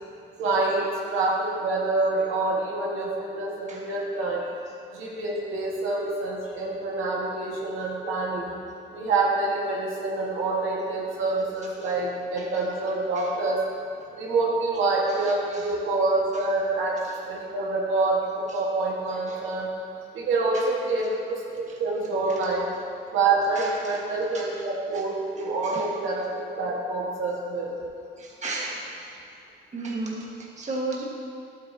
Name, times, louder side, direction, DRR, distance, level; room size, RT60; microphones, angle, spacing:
voice 1, 0.4-4.4 4.9-8.5 8.9-13.6 14.1-19.7 20.1-22.7 23.1-27.7, right 3 dB, 80° right, -4 dB, 1.7 m, -26 dB
voice 2, 23.5-24.0 24.3-24.6 24.9-25.0 25.4-25.8 28.2-29.1 29.7-31.0, right 2 dB, 35° right, -3 dB, 1.7 m, -35 dB
11.5 x 8.6 x 2.9 m, 2.5 s
cardioid pair, 90°, 20 cm